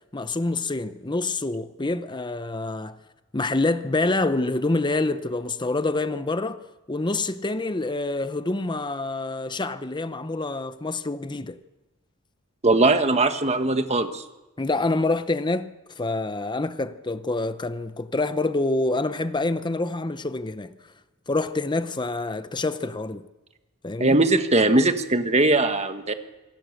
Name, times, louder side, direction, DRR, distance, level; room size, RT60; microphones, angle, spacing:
voice 1, 0.1-3.0 3.3-11.6 14.6-20.7 21.3-23.2 23.8-24.2, left 2 dB, 20° left, 0.8 m, -27 dB
voice 2, 12.6-14.2 24.0-26.1, right 2 dB, 30° right, 1.4 m, -20 dB
27.0 x 17.5 x 6.6 m
head